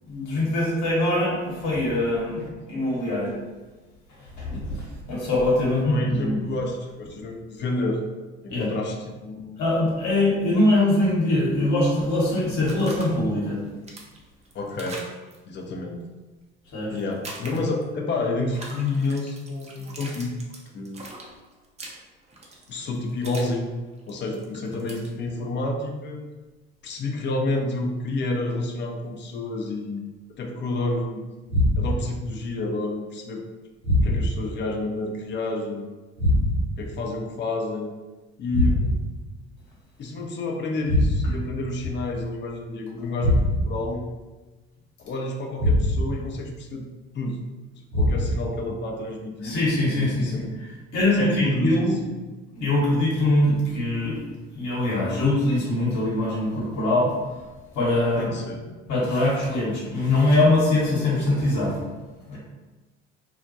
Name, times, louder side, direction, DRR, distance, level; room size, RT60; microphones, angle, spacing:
voice 1, 0.1-2.4 2.6-3.3 4.3-6.4 8.5-8.7 9.6-13.6 16.7-17.0 49.4-50.5 50.9-52.0 52.5-54.2 54.5-57.1 57.7-58.4 58.9-61.9 62.3-62.4, left 1 dB, 60° left, -5 dB, 1.0 m, -22 dB
voice 2, 5.8-8.0 8.4-9.6 14.5-15.0 15.5-16.0 16.9-20.3 20.7-21.1 22.7-23.7 24.1-26.3 26.8-30.0 30.4-31.2 31.8-33.5 34.0-35.8 36.8-37.9 38.4-38.9 40.0-43.4 43.6-44.0 45.0-46.8 47.1-47.4 47.9-49.5 50.0-50.4 51.1-52.0 58.2-58.6, left 2 dB, 35° left, 2 dB, 0.5 m, -29 dB
sound 1, 12.4-13.0 13.5-15.4 17.0-17.8 18.5-23.5 23.9-25.1, right 2 dB, 20° right, 0.5 m, -41 dB
sound 2, 31.5-32.1 33.8-34.5 36.2-36.8 38.5-39.2 40.9-41.5 43.2-43.8 45.6-46.2 47.9-48.5, left 1 dB, 85° right, 0.6 m, -22 dB
2.3 x 2.1 x 2.6 m, 1.2 s
hypercardioid pair, 60°, 33 cm